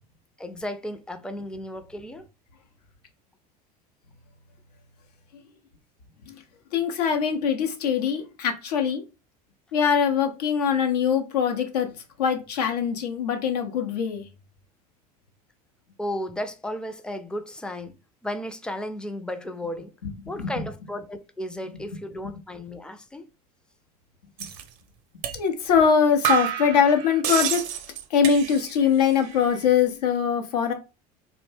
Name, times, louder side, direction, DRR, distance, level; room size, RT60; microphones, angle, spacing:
voice 1, 0.4-2.3 16.0-17.9 18.2-19.9 20.3-23.2, left 1 dB, 5° left, 0.4 m, -34 dB
voice 2, 6.7-9.0 9.7-11.9 12.2-14.3 20.0-20.1 20.4-20.7 25.3-27.6 28.1-30.7, left 7 dB, 80° left, 0.7 m, -22 dB
sound 1, 24.4-24.6 25.2-25.4 25.7-25.8 26.2-28.9 29.1-29.7, right 9 dB, 60° right, 0.5 m, -29 dB
2.7 x 2.1 x 3.2 m
hypercardioid pair, 75°, 20 cm